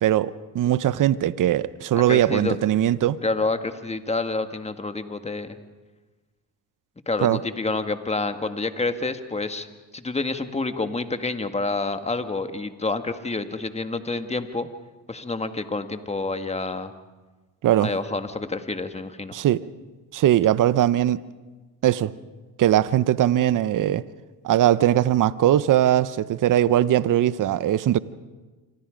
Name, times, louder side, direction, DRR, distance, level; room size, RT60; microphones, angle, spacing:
voice 1, 0.0-3.2 7.2-7.4 17.6-17.9 19.3-19.6 20.1-21.2 21.8-22.1 22.6-24.0 24.4-28.0, right 12 dB, 50° right, 0.9 m, -20 dB
voice 2, 1.9-2.6 3.2-5.6 7.1-9.7 9.9-14.7 15.1-16.9 17.8-19.4, left 3 dB, 15° left, 1.8 m, -28 dB
27.5 x 25.5 x 5.2 m
supercardioid pair, 85°, 40 cm